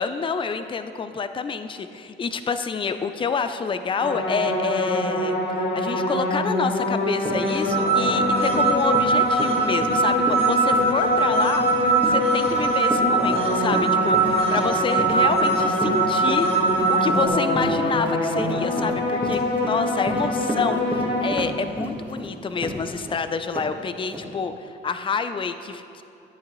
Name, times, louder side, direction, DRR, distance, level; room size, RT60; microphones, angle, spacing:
voice 1, 0.0-5.4 5.7-16.5 16.9-26.0, left 5 dB, 25° left, 10 dB, 0.4 m, -28 dB
sound 1, 4.0-21.3, left 1 dB, 60° left, 1.5 m, -25 dB
Run, 6.8-6.9 7.2-23.2 23.5-23.7 24.1-24.3, equal, 10° right, 1.6 m, -32 dB
sound 2, 7.5-17.3, right 4 dB, 30° right, 1.3 m, -22 dB
13.0 x 8.4 x 3.1 m, 2.6 s
cardioid pair, 90°, 20 cm